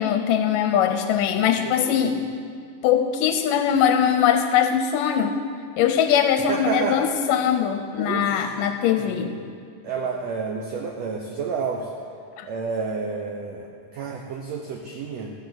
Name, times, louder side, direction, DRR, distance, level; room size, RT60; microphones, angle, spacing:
voice 1, 0.0-2.2 2.8-5.4 5.8-9.4 12.4-12.5, left 8 dB, 80° left, 7 dB, 2.0 m, -21 dB
voice 2, 1.6-2.2 6.5-7.0 8.0-8.5 9.0-9.4 9.8-11.9 12.4-13.7 13.9-15.3, right 5 dB, 85° right, 1 dB, 1.5 m, -30 dB
14.5 x 6.1 x 7.6 m, 2.2 s
omnidirectional pair, 4.1 m